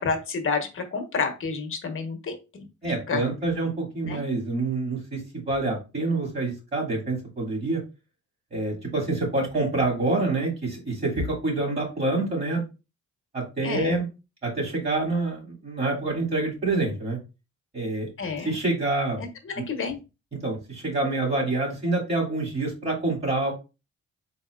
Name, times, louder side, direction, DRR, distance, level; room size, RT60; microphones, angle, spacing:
voice 1, 0.0-2.7 3.1-3.2 4.1-4.2 13.6-14.0 18.2-18.6 19.2-20.0, left 4 dB, 45° left, 4 dB, 1.2 m, -30 dB
voice 2, 2.8-5.2 5.5-7.8 8.5-12.6 13.3-14.0 14.4-17.2 17.7-18.1 18.4-19.2 20.4-23.5, right 2 dB, 30° right, -1 dB, 2.5 m, -27 dB
4.2 x 3.9 x 2.5 m, 0.28 s
cardioid pair, 90°, 30 cm